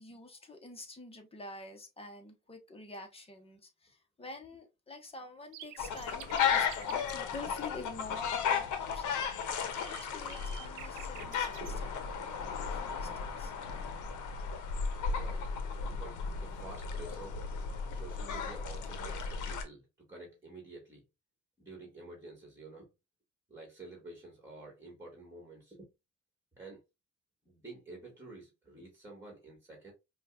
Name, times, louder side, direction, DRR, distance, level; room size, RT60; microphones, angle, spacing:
voice 1, 0.0-9.2 9.5-13.5, left 3 dB, 20° left, 1.0 m, -48 dB
sound 1, 5.5-7.2 9.3-11.8, right 13 dB, 85° right, 0.5 m, -50 dB
sound 2, 5.8-19.6, left 6 dB, 80° left, 0.8 m, -35 dB
voice 2, 10.3-10.6 11.2-11.8 12.1-12.2 13.7-13.9 15.0-15.5 15.8-17.4 17.9-21.0 21.6-22.9 23.5-25.9 26.5-26.8 27.5-29.9, right 2 dB, 10° right, 1.8 m, -50 dB
5.1 x 2.4 x 2.5 m
cardioid pair, 90°, 30 cm